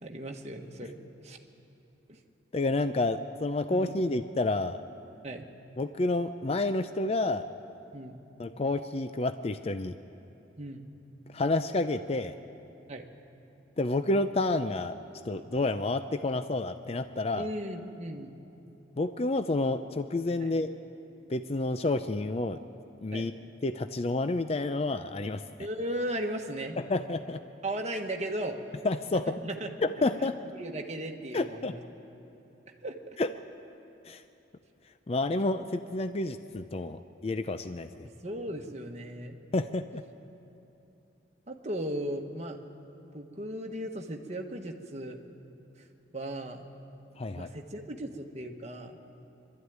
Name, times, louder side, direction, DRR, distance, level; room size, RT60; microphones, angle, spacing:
voice 1, 0.0-1.4 3.7-4.0 5.2-5.5 7.9-8.2 10.6-10.9 12.9-13.0 17.3-18.3 20.4-20.5 23.1-23.3 25.6-26.8 27.6-28.6 29.4-29.7 30.5-31.8 32.8-33.2 38.2-39.4 41.5-42.6 43.1-45.2 46.1-46.6 47.3-49.0, right 1 dB, 35° right, 2 dB, 1.4 m, -36 dB
voice 2, 2.5-4.8 5.8-7.4 8.4-10.0 11.3-12.3 13.8-15.0 15.3-17.5 19.0-20.7 21.3-22.6 23.0-23.3 23.6-25.4 26.8-27.4 28.8-29.3 29.8-30.4 31.3-31.8 33.2-33.3 34.1-34.2 35.1-38.1 39.5-40.0 47.2-47.5, left 2 dB, 35° left, 10 dB, 0.4 m, -29 dB
22.5 x 13.0 x 9.4 m, 2.9 s
head